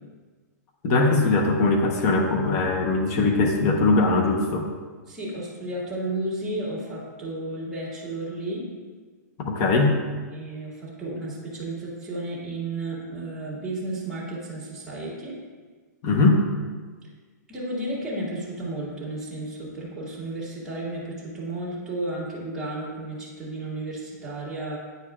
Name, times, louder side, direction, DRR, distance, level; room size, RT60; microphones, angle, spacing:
voice 1, 0.8-4.7 9.4-10.0 16.0-16.4, left 3 dB, 35° left, 3 dB, 0.9 m, -21 dB
voice 2, 5.1-8.6 10.3-15.3 17.5-24.8, right 2 dB, 5° right, -8 dB, 2.0 m, -33 dB
9.3 x 4.7 x 2.4 m, 1.4 s
hypercardioid pair, 145°, 10 cm